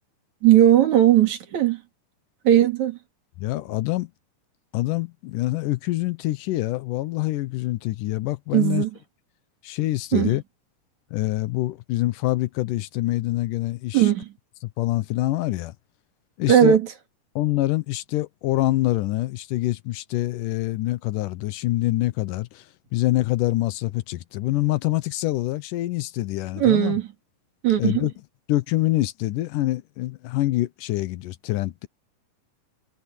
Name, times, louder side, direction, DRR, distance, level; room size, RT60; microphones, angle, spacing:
voice 1, 0.4-1.8 2.5-3.0 8.5-8.9 10.1-10.4 13.9-14.3 16.5-16.9 26.6-27.0 27.6-28.1, right 11 dB, 60° right, 3.5 m, -18 dB
voice 2, 3.4-4.1 4.7-8.8 9.6-10.4 11.1-14.1 14.6-15.7 16.4-16.8 17.4-22.7 22.9-27.0 27.8-28.1 28.5-31.9, left 17 dB, 85° left, 2.4 m, -25 dB
omnidirectional pair, 3.7 m